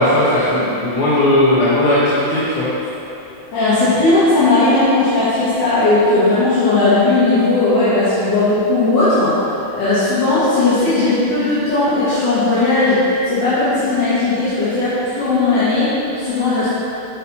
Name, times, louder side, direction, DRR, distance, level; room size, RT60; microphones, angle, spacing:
voice 1, 0.0-2.7, left 1 dB, 75° left, -11 dB, 2.1 m, -16 dB
voice 2, 3.5-9.4 9.7-16.7, left 2 dB, 60° left, -14 dB, 2.4 m, -16 dB
9.7 x 4.2 x 4.3 m, 2.9 s
omnidirectional pair, 2.3 m